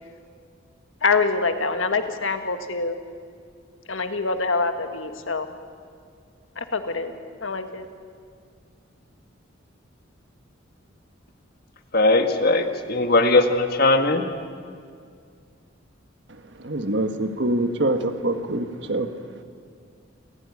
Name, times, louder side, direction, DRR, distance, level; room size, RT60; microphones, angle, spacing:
voice 1, 1.0-3.0 3.9-5.5 6.6-7.1 7.4-7.9, left 4 dB, 80° left, 8 dB, 1.8 m, -25 dB
voice 2, 11.9-14.2, left 2 dB, 50° left, 7 dB, 1.7 m, -19 dB
voice 3, 16.6-19.1, right 1 dB, 60° right, 8 dB, 1.6 m, -25 dB
27.5 x 15.5 x 9.9 m, 2.2 s
head